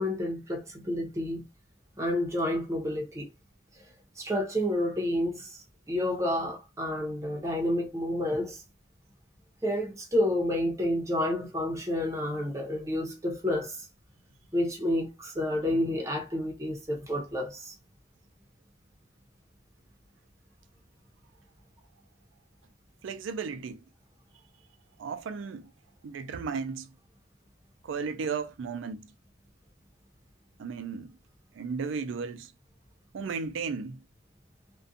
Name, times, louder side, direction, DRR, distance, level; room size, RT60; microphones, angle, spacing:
voice 1, 0.0-1.4 2.0-3.3 4.2-8.6 9.6-13.9 14.5-17.7, left 1 dB, 15° right, 0.7 m, -30 dB
voice 2, 23.0-23.8 25.0-25.7 26.0-26.9 27.8-29.1 30.6-31.2 31.5-32.5 33.1-34.0, right 5 dB, 80° right, 0.4 m, -34 dB
2.4 x 2.2 x 2.6 m
head